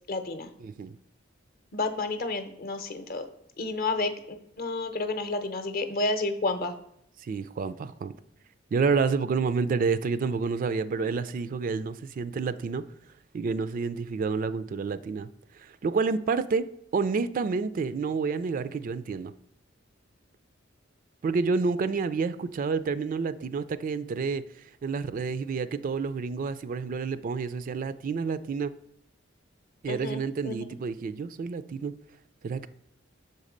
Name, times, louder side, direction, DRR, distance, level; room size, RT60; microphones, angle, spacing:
voice 1, 0.1-0.5 1.7-3.3 3.6-6.7 29.9-30.6, left 2 dB, 50° left, 0.7 m, -31 dB
voice 2, 0.6-1.0 7.2-8.1 8.7-12.8 13.3-15.3 15.6-16.7 16.9-19.3 21.2-24.4 24.8-28.7 29.8-31.9 32.4-32.7, right 4 dB, 45° right, 0.3 m, -29 dB
6.5 x 4.2 x 5.0 m
head